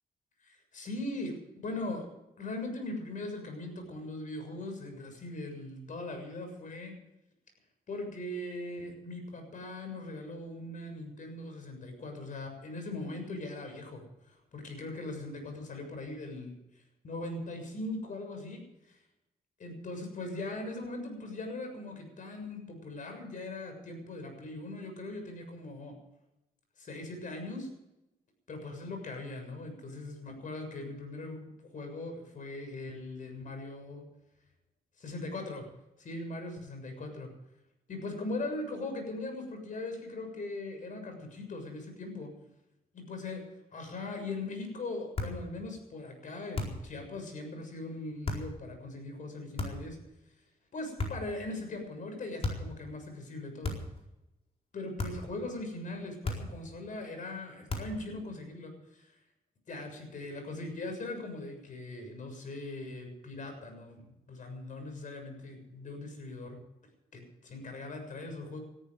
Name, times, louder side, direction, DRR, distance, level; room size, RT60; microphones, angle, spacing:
voice 1, 0.4-2.1 2.4-6.9 7.9-16.6 17.0-18.6 18.9-19.0 19.6-25.9 26.8-27.7 28.5-34.1 35.0-35.6 36.0-37.3 37.9-42.3 42.9-43.4 43.7-50.0 50.7-53.8 54.7-59.1 59.7-66.6 67.1-68.6, left 2 dB, 55° left, 5 dB, 7.0 m, -40 dB
sound 1, 45.1-45.4 46.5-46.9 48.2-48.5 49.6-50.0 51.0-51.4 52.4-52.7 53.6-54.0 55.0-55.3 56.2-56.6 57.7-58.0, left 2 dB, 40° left, 4.5 m, -35 dB
19.0 x 14.0 x 5.2 m, 0.91 s
cardioid pair, 105°, 16 cm